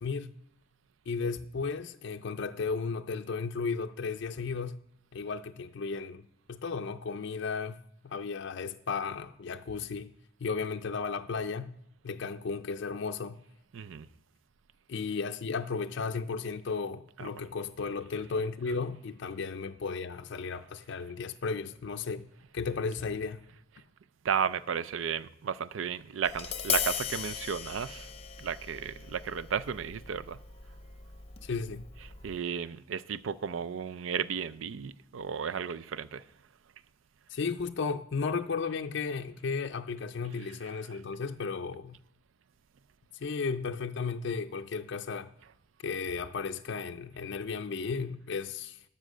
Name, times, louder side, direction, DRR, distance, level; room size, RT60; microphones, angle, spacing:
voice 1, 0.0-0.3 1.1-4.8 5.1-7.8 8.0-10.1 10.4-11.7 12.0-13.4 14.9-22.3 22.5-23.4 31.4-31.9 37.3-42.0 43.1-45.3 45.8-48.8, left 5 dB, 60° left, 0.4 m, -34 dB
voice 2, 13.7-14.1 17.2-17.3 24.2-28.1 28.4-30.4 32.2-36.2, right 7 dB, 75° right, 0.4 m, -34 dB
Tap, 26.2-32.4, left 8 dB, 30° left, 0.7 m, -38 dB
12.5 x 5.6 x 6.5 m
head